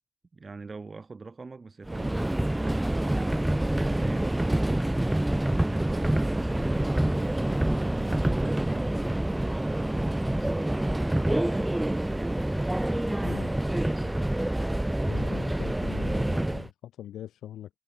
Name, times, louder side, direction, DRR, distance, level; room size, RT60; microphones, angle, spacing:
voice 1, 0.3-5.1 5.6-9.0 9.6-12.4, right 4 dB, 45° right, 5.0 m, -42 dB
Subway metro underground, 1.9-16.7, right 1 dB, 15° right, 1.9 m, -27 dB
voice 2, 13.2-13.5 15.1-17.7, left 11 dB, 85° left, 8.0 m, -42 dB
supercardioid pair, 50°, 0 cm